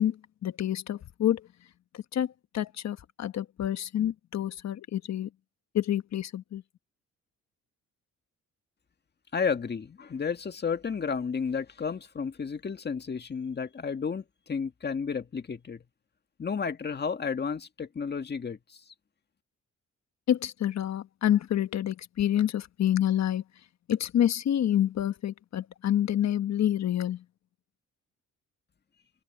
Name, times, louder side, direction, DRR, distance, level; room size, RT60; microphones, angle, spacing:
voice 1, 0.0-1.5 1.9-5.3 5.7-6.6 20.3-23.4 23.9-27.2, left 11 dB, 60° left, 1.3 m, -28 dB
voice 2, 9.3-15.8 16.4-18.8, left 6 dB, 35° left, 1.9 m, -32 dB
cardioid pair, 90°, 30 cm